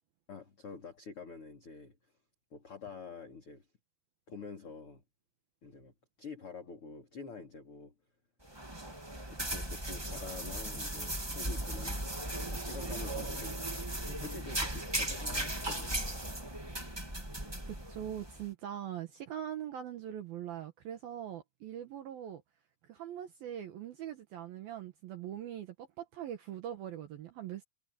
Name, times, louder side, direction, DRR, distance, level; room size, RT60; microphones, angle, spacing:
voice 1, 0.3-2.0 2.5-3.7 4.3-5.0 5.6-5.9 6.2-7.9 9.3-12.0 12.3-16.0, left 4 dB, 30° left, 3.7 m, -47 dB
sound 1, 8.4-18.4, right 1 dB, 15° right, 0.8 m, -37 dB
voice 2, 17.6-22.4 22.8-27.6, right 10 dB, 65° right, 2.6 m, -42 dB
omnidirectional pair, 5.4 m